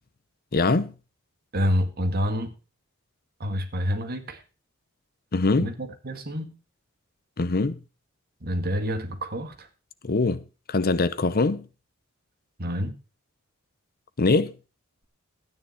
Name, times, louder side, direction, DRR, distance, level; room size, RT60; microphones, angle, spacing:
voice 1, 0.5-0.9 5.3-5.7 7.4-7.8 10.0-10.4 10.7-11.7 14.2-14.5, left 3 dB, 45° left, 0.8 m, -23 dB
voice 2, 1.5-2.5 3.4-4.4 5.6-6.5 8.4-9.7 12.6-13.0, equal, 45° right, 1.8 m, -28 dB
12.5 x 9.6 x 4.3 m
head